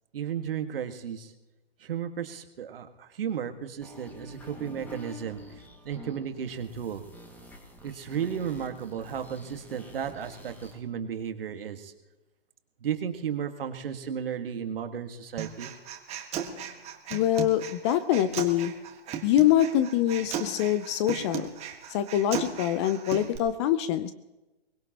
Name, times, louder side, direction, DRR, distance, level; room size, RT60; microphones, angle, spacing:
voice 1, 0.1-1.3 1.8-7.0 7.8-11.9 12.8-15.7, right 8 dB, 65° right, 7 dB, 1.8 m, -34 dB
sound 1, 3.8-10.8, equal, 5° left, 2.0 m, -47 dB
Human voice, 15.4-23.4, right 8 dB, 20° right, 1.7 m, -37 dB
voice 2, 17.1-18.7 19.2-21.5 21.9-24.1, left 11 dB, 30° left, 13 dB, 0.6 m, -24 dB
23.0 x 20.0 x 3.0 m, 1.1 s
hypercardioid pair, 130°, 31 cm